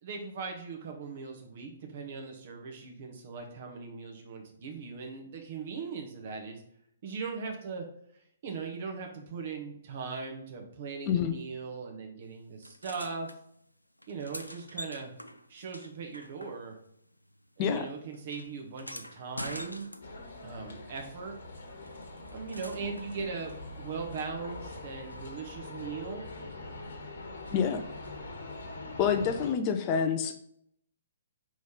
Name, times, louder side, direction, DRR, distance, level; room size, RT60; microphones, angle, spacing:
voice 1, 0.0-6.6 7.0-7.8 8.4-13.3 14.1-15.1 15.5-16.8 17.6-19.9 20.4-21.3 22.3-26.2 29.1-29.5, right 5 dB, 45° right, 2 dB, 1.5 m, -39 dB
sound 1, 12.6-13.4 14.0-17.0 17.2-20.4 21.9-23.1 25.1-25.2, equal, 90° left, 0.5 m, -45 dB
sound 2, 20.0-29.5, left 2 dB, 55° left, 1.3 m, -43 dB
voice 2, 27.5-27.8 29.0-30.4, left 7 dB, 30° left, 7 dB, 0.5 m, -27 dB
5.1 x 4.0 x 5.4 m, 0.70 s
figure-of-eight pair, 125°, 0 cm